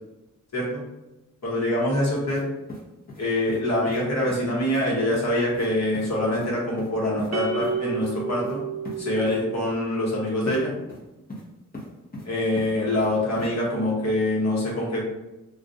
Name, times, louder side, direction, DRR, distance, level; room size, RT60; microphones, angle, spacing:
voice 1, 0.5-0.8 1.4-2.5 3.2-8.6 8.9-10.7 12.2-15.0, left 1 dB, 55° left, -4 dB, 1.3 m, -25 dB
sound 1, 2.3-2.4 2.7-3.6 3.9-4.0 4.3-4.4 4.7-4.8 5.1-5.2 5.5-5.7 5.9-6.1 6.3-6.5 6.8-7.3 7.6-7.7 8.0-8.1 8.4-8.5 8.8-9.0 9.3-9.4 10.5-10.6 10.9-11.4 11.7-12.3 12.6-13.1 13.4-13.5, left 1 dB, 30° left, 1.0 m, -39 dB
sound 2, 7.3-9.8, right 7 dB, 55° right, 0.4 m, -31 dB
2.5 x 2.3 x 4.0 m, 0.99 s
wide cardioid pair, 90°, 32 cm